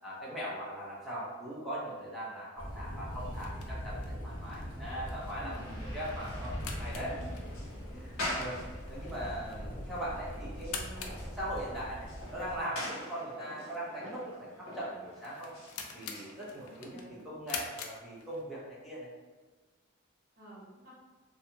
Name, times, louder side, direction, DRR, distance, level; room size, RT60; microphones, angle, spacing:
voice 1, 0.0-7.1 7.9-8.6 8.9-15.5 15.9-19.1, equal, ahead, -8 dB, 0.6 m, -40 dB
Thunder, 2.6-12.6, equal, 25° right, 0.9 m, -41 dB
sound 1, 3.1-18.8, left 5 dB, 90° left, 0.4 m, -47 dB
sound 2, 4.5-16.9, left 1 dB, 65° left, 1.0 m, -45 dB
voice 2, 5.4-5.8 7.0-8.0 16.6-17.3 20.4-20.9, equal, 50° right, -8 dB, 1.1 m, -51 dB
2.7 x 2.2 x 2.7 m, 1.3 s
head